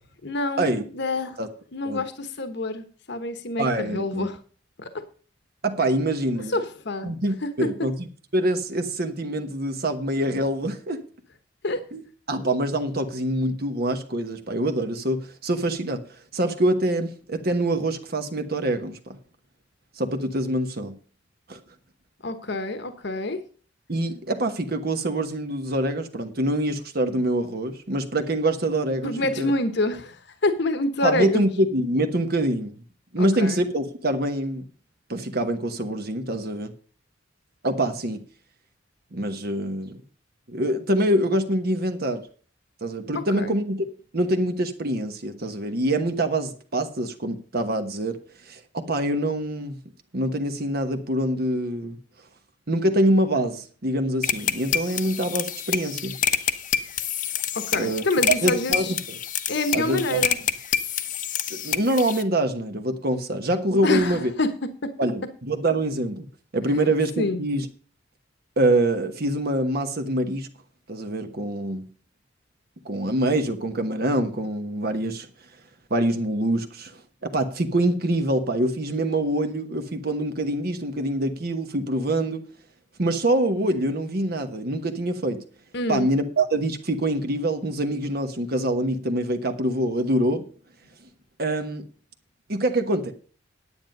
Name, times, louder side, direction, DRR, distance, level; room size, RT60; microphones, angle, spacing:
voice 1, 0.2-0.7 0.9-1.3 1.7-4.4 4.8-4.9 6.5-7.1 11.6-11.8 22.2-23.4 29.0-30.1 30.4-31.4 33.2-33.6 43.3-43.5 57.5-58.9 59.5-60.4 63.8-64.5 66.8-67.4 85.7-86.1, left 2 dB, 60° left, 10 dB, 1.1 m, -27 dB
voice 2, 3.6-4.3 5.6-6.6 7.0-8.1 8.3-11.0 11.9-16.0 16.3-19.2 20.0-21.0 21.5-21.6 23.9-29.5 31.0-32.7 33.1-34.6 35.1-36.7 37.6-38.2 39.1-40.0 40.5-42.2 42.8-43.8 44.1-48.2 48.4-49.8 50.1-52.0 52.7-56.2 57.7-59.2 59.7-60.3 61.5-64.3 65.0-66.3 66.5-67.7 68.6-70.5 70.9-71.8 72.8-75.3 75.9-82.4 83.0-85.4 85.9-90.5 91.4-91.8 92.5-93.1, right 1 dB, 50° right, 7 dB, 1.1 m, -25 dB
sound 1, 54.2-62.2, left 9 dB, 45° left, 0.8 m, -27 dB
9.9 x 9.2 x 5.3 m, 0.41 s
head